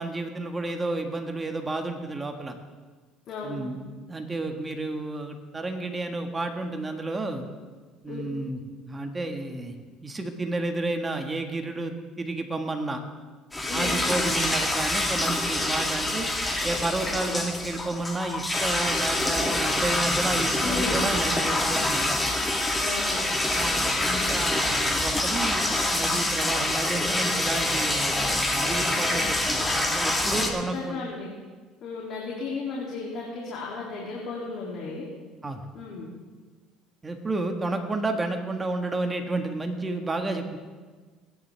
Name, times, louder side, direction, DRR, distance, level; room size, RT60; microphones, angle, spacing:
voice 1, 0.0-2.5 3.4-7.5 8.0-8.6 8.9-9.8 10.0-13.0 13.7-16.3 16.6-22.3 23.5-31.0 35.4-35.6 37.0-40.6, right 2 dB, 20° right, 4 dB, 1.6 m, -31 dB
voice 2, 3.3-3.6 8.1-8.2 13.6-14.0 20.6-21.0 22.8-23.2 24.0-24.3 30.3-30.4 30.7-31.3 31.8-35.1 35.7-36.1, left 4 dB, 55° left, -4 dB, 2.8 m, -34 dB
sound 1, 13.5-30.5, left 1 dB, 10° left, 1.7 m, -26 dB
21.0 x 10.0 x 3.5 m, 1.4 s
supercardioid pair, 95°, 0 cm